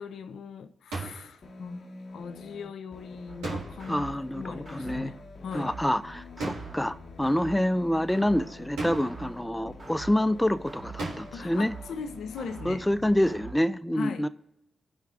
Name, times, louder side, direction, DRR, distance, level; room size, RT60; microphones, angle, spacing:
voice 1, 0.0-1.8 2.1-5.7 11.3-12.9 14.0-14.3, left 5 dB, 75° left, 0.5 m, -39 dB
sound 1, 0.9-1.3 3.4-4.1 6.4-6.9 8.8-9.3 11.0-11.5, right 2 dB, 90° right, 1.7 m, -36 dB
sound 2, 1.4-13.4, left 3 dB, 55° left, 1.0 m, -48 dB
sound 3, 3.3-13.5, right 4 dB, 50° right, 2.6 m, -46 dB
voice 2, 3.9-5.1 5.5-11.7 12.7-14.3, left 1 dB, 10° left, 0.4 m, -27 dB
16.0 x 5.7 x 2.4 m
supercardioid pair, 45°, 0 cm